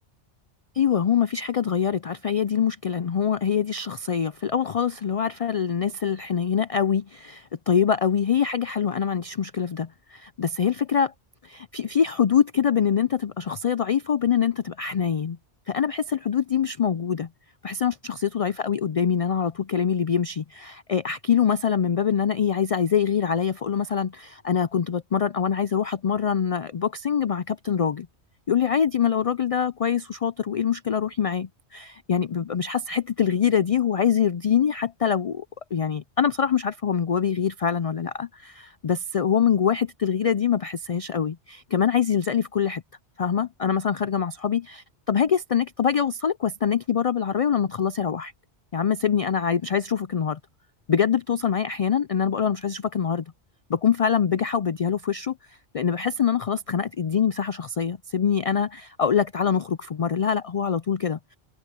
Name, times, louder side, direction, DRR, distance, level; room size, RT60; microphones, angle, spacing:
voice 1, 0.7-11.1 11.4-15.4 15.7-17.3 17.6-28.1 28.5-35.4 35.7-42.8 43.2-48.3 48.7-50.4 50.9-53.2 53.7-55.4 55.7-61.4, left 7 dB, 70° left, 0.3 m, -24 dB
omnidirectional pair, 1.2 m